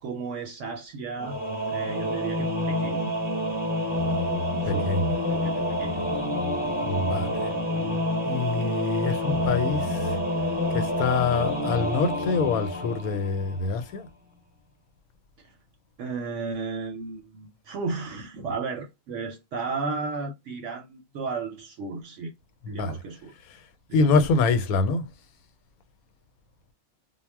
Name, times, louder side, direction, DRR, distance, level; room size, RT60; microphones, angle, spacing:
voice 1, 0.0-1.4 1.7-3.1 4.6-6.1 16.0-22.3 22.7-23.3 23.9-24.1, right 4 dB, 70° right, 0.8 m, -34 dB
Singing / Musical instrument, 1.2-13.7, left 1 dB, 10° right, 0.6 m, -28 dB
voice 2, 4.7-5.1 6.8-7.5 8.2-10.1 10.7-14.1 22.6-23.0 23.9-25.1, left 4 dB, 85° left, 1.0 m, -25 dB
2.3 x 2.0 x 3.2 m
omnidirectional pair, 1.5 m